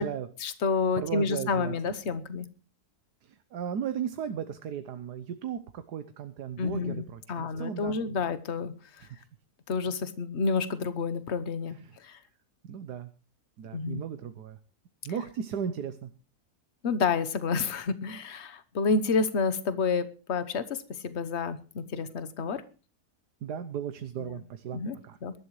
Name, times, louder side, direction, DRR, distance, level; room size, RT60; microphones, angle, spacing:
voice 1, 0.4-2.5 6.6-9.1 9.7-12.2 13.7-14.0 16.8-22.6 24.2-24.4 24.7-25.0 25.2-25.3, left 4 dB, 45° left, 12 dB, 1.3 m, -29 dB
voice 2, 1.0-1.9 3.2-8.2 9.0-9.2 11.7-12.0 12.6-13.1 13.6-14.6 15.0-16.1 23.4-25.2, right 8 dB, 80° right, 10 dB, 1.5 m, -36 dB
22.5 x 12.5 x 3.2 m, 0.35 s
omnidirectional pair, 1.7 m